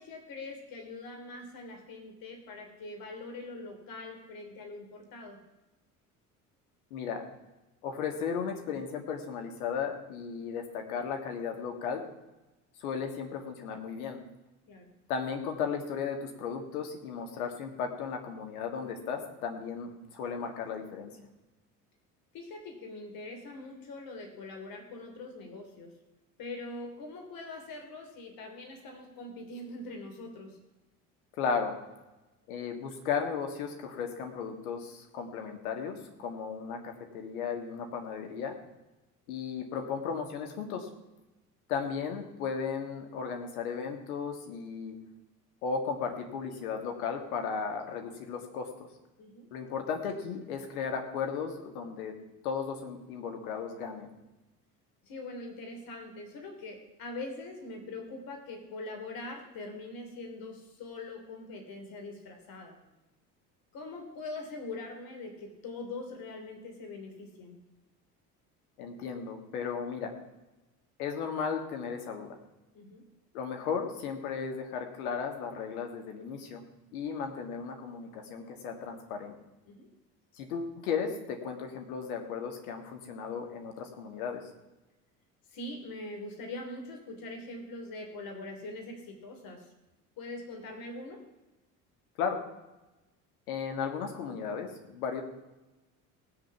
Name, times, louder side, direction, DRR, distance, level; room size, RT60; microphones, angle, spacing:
voice 1, 0.0-5.4 14.7-14.9 22.3-25.9 26.4-30.6 49.2-49.5 55.0-62.8 63.7-67.6 72.7-73.0 79.7-79.9 85.5-89.7 90.2-91.2, left 2 dB, 45° left, 3 dB, 3.1 m, -43 dB
voice 2, 6.9-7.2 7.8-12.0 12.8-14.2 15.1-21.1 31.4-31.8 32.5-38.5 39.3-40.9 41.7-45.0 45.6-48.7 49.5-52.1 52.4-54.1 68.8-70.1 71.0-72.4 73.3-76.6 76.9-79.3 80.4-84.4 92.2-92.4 93.5-95.2, left 6 dB, 65° left, 4 dB, 2.1 m, -35 dB
18.5 x 6.6 x 5.8 m, 1.0 s
figure-of-eight pair, 60°, 46 cm